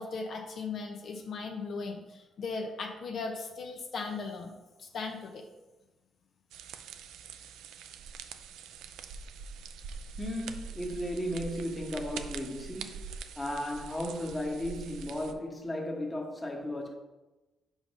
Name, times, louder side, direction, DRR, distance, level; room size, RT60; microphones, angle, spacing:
voice 1, 0.0-4.5 4.8-5.4, left 4 dB, 60° left, 0.7 m, -37 dB
sound 1, 6.5-15.3, right 6 dB, 85° right, 0.4 m, -44 dB
voice 2, 10.2-13.0 13.4-16.9, left 1 dB, 15° left, 1.1 m, -35 dB
4.9 x 4.9 x 5.4 m
cardioid pair, 90°, 0 cm